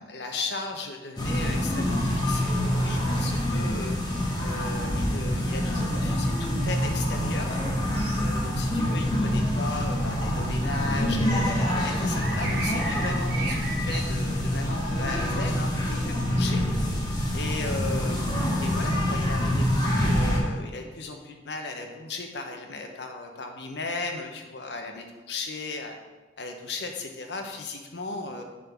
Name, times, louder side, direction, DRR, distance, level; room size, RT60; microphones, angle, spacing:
voice 1, 0.0-4.0 4.4-7.6 8.1-16.6 17.3-26.0 26.4-28.4, left 3 dB, 70° left, 4 dB, 0.9 m, -36 dB
sound 1, 1.2-20.4, equal, 25° left, 1.2 m, -26 dB
sound 2, 7.9-16.7, right 3 dB, 60° right, 1.2 m, -40 dB
6.5 x 3.8 x 5.8 m, 1.2 s
head